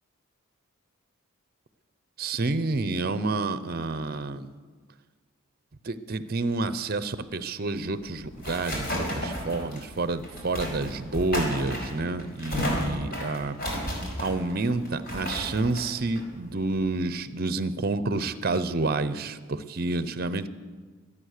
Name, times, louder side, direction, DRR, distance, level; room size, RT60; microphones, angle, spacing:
voice 1, 2.2-4.5 5.8-13.8 14.2-20.5, right 3 dB, 45° right, 13 dB, 0.6 m, -29 dB
sound 1, 7.8-17.1, equal, 45° left, 4.8 m, -33 dB
24.5 x 8.7 x 6.6 m, 1.5 s
head